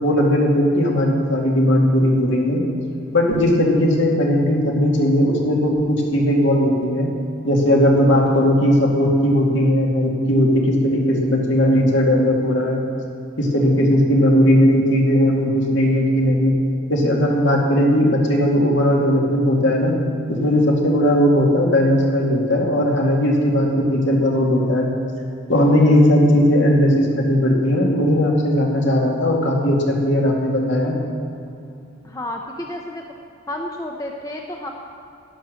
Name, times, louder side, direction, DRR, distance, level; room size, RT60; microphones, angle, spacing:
voice 1, 0.0-2.6 3.1-7.1 7.4-12.8 13.4-16.6 16.9-20.0 20.3-24.9 25.5-30.9, equal, 60° left, -1 dB, 2.4 m, -17 dB
voice 2, 32.0-33.0 33.5-34.7, left 1 dB, 15° left, 1 dB, 0.7 m, -30 dB
12.0 x 11.0 x 6.5 m, 2.7 s
head